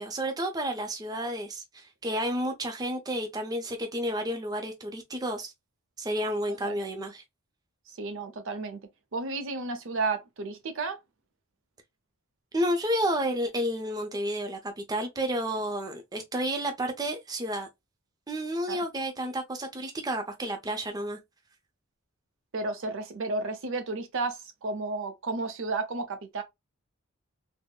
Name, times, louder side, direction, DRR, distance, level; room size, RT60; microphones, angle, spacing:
voice 1, 0.0-5.5 6.0-7.2 12.5-17.7 18.3-21.2, equal, 20° right, 0.5 m, -31 dB
voice 2, 6.5-6.9 8.0-11.0 18.7-18.8 22.5-26.4, right 3 dB, 65° right, 0.6 m, -33 dB
3.6 x 2.0 x 2.2 m
head